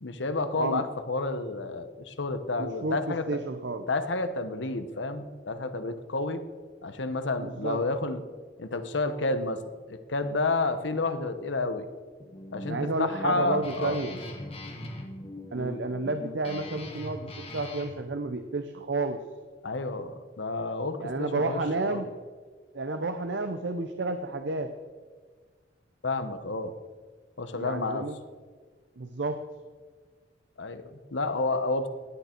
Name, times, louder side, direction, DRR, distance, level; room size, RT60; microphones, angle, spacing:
voice 1, 0.0-3.2 3.9-6.4 6.8-8.2 8.6-9.6 9.9-11.9 12.5-14.0 19.6-22.0 26.0-26.7 27.4-28.1 30.6-31.9, left 3 dB, 75° left, 10 dB, 1.0 m, -30 dB
voice 2, 0.6-0.9 2.6-3.9 7.4-7.8 12.7-14.2 15.5-19.2 21.0-22.1 22.7-24.7 27.5-28.2 29.0-29.4, right 3 dB, 65° right, 8 dB, 0.7 m, -31 dB
Guitar, 12.2-18.0, left 1 dB, 30° left, 1.7 m, -40 dB
17.0 x 9.5 x 4.5 m, 1.5 s
head